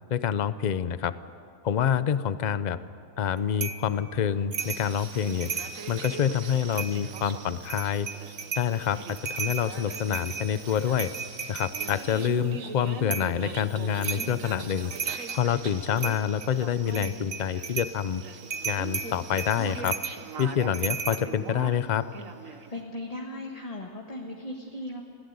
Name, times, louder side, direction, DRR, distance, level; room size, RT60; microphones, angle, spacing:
voice 1, 0.1-1.1 1.6-2.8 3.2-5.5 5.9-8.1 8.6-11.1 11.5-14.9 15.3-18.2 18.7-20.0 20.4-22.1, left 8 dB, 55° left, 14 dB, 0.5 m, -27 dB
sound 1, 3.6-3.9 4.5-4.9 5.3-6.2 6.7-7.3 7.7-8.7 9.1-12.0 13.1-13.4 14.0-14.4 14.8-15.5 16.0-16.5 16.9-18.0 18.5-21.2, right 5 dB, 40° right, 0.9 m, -34 dB
sound 2, 4.6-22.8, right 5 dB, 60° right, 1.6 m, -42 dB
voice 2, 22.4-25.0, left 1 dB, 25° left, 1 dB, 1.4 m, -38 dB
21.0 x 16.0 x 9.5 m, 2.6 s
omnidirectional pair, 1.6 m